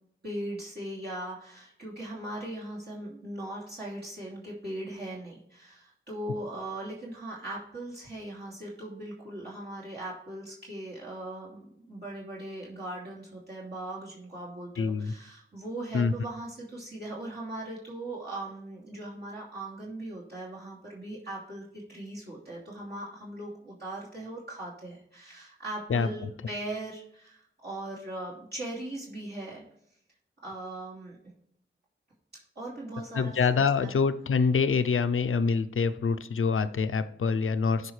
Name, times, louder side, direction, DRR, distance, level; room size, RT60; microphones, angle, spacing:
voice 1, 0.2-29.6 30.4-31.2 32.5-34.0, right 1 dB, 55° right, -7 dB, 2.9 m, -39 dB
voice 2, 14.8-15.1 15.9-16.1 25.9-26.3 33.1-37.9, left 5 dB, 80° left, 11 dB, 0.6 m, -26 dB
13.5 x 5.1 x 3.3 m, 0.71 s
wide cardioid pair, 70°, 21 cm